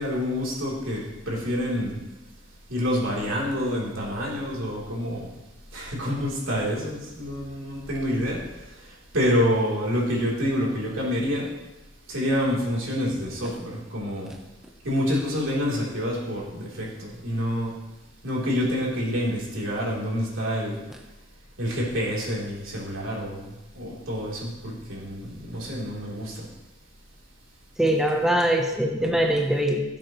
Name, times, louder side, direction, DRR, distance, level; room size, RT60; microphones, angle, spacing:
voice 1, 0.0-2.0 2.7-5.3 5.7-8.4 8.7-11.5 12.1-14.3 14.8-17.7 18.2-20.8 21.6-26.5, equal, 80° right, -4 dB, 3.4 m, -27 dB
voice 2, 27.8-29.8, right 1 dB, ahead, 0 dB, 0.8 m, -22 dB
17.0 x 7.6 x 3.1 m, 0.98 s
head